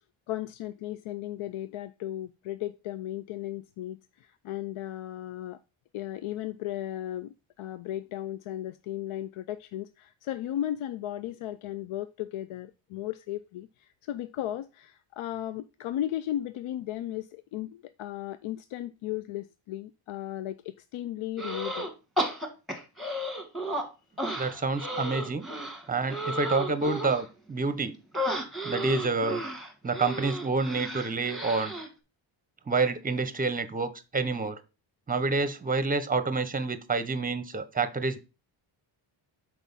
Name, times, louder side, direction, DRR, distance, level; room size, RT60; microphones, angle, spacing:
voice 1, 0.3-5.6 5.9-21.9, left 13 dB, 75° left, 0.6 m, -35 dB
sound 1, 21.4-21.9 22.2-23.8 24.2-27.2 28.1-31.9, right 1 dB, ahead, 1.5 m, -33 dB
voice 2, 24.4-25.4 25.9-27.9 28.6-29.4 29.8-31.7 32.7-34.6 35.1-38.2, right 3 dB, 15° right, 0.7 m, -28 dB
6.2 x 4.6 x 5.4 m
cardioid pair, 115°, 50 cm